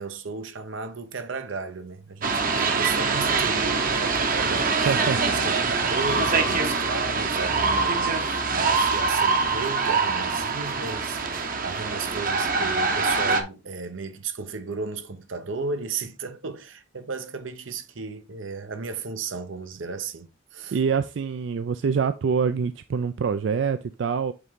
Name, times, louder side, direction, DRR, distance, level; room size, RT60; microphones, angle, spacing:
voice 1, 0.0-11.2 11.6-20.8, right 4 dB, 85° right, 0.8 m, -34 dB
sound 1, 2.2-13.4, right 4 dB, 45° right, 0.9 m, -24 dB
voice 2, 4.9-5.2 20.7-24.3, right 6 dB, 65° right, 0.4 m, -25 dB
8.0 x 3.6 x 3.6 m
head